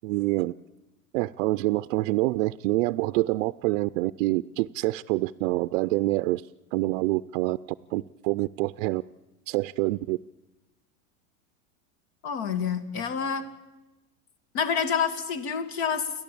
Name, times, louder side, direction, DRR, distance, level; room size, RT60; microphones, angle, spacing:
voice 1, 0.0-0.5 1.1-6.4 6.7-7.6 7.9-9.0 9.5-10.2, right 20 dB, 70° right, 13 dB, 0.6 m, -26 dB
voice 2, 12.2-13.4 14.5-16.2, left 7 dB, 60° left, 9 dB, 2.7 m, -28 dB
29.5 x 12.0 x 8.7 m, 1.1 s
supercardioid pair, 150°, 41 cm